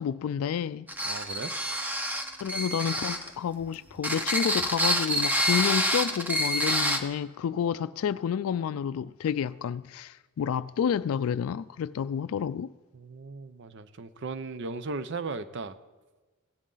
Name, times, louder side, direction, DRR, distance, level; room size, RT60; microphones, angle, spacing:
voice 1, 0.0-0.9 2.4-12.7, left 8 dB, 80° left, 0.3 m, -30 dB
sound 1, 0.9-3.3 4.0-7.0, equal, 10° right, 0.9 m, -27 dB
voice 2, 1.0-1.5 12.9-15.8, right 3 dB, 60° right, 0.7 m, -36 dB
16.5 x 11.0 x 3.9 m
head